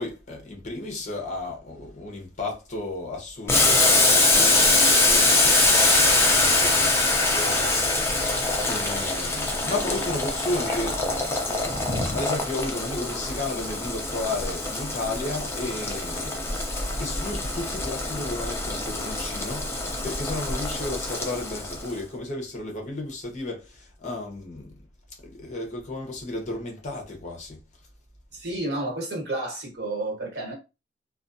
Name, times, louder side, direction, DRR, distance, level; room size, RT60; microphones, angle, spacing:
voice 1, 0.0-11.1 11.5-16.4 17.0-24.7 25.2-27.6, left 2 dB, 40° left, 0.7 m, -33 dB
Boiling, 3.5-21.9, left 2 dB, 15° left, 0.4 m, -23 dB
sound 1, 9.6-10.2 10.5-13.9 14.2-14.4 14.7-14.9 15.2-15.3, equal, 20° right, 0.9 m, -36 dB
voice 2, 28.3-30.5, right 2 dB, 65° right, 1.2 m, -31 dB
2.4 x 2.2 x 2.5 m
head